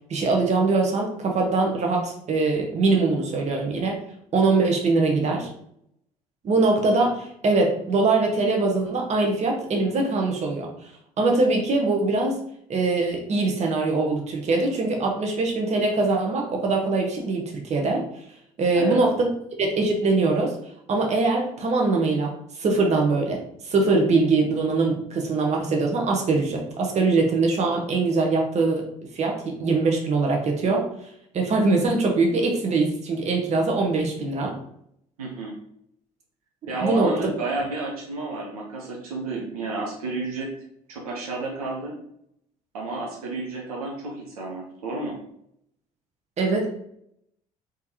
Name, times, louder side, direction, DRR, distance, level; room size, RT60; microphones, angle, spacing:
voice 1, 0.1-4.0 4.3-5.5 6.4-10.7 11.2-12.4 12.7-18.0 18.6-19.3 19.6-20.6 20.9-23.4 23.6-28.9 29.1-30.8 31.3-34.6 36.8-37.1 46.4-46.7, right 3 dB, 35° right, 1 dB, 1.0 m, -22 dB
voice 2, 35.2-35.6 36.7-40.5 40.9-42.0 42.7-45.2, right 3 dB, 75° right, -2 dB, 0.8 m, -31 dB
3.6 x 3.4 x 2.8 m, 0.71 s
figure-of-eight pair, 55°, 19 cm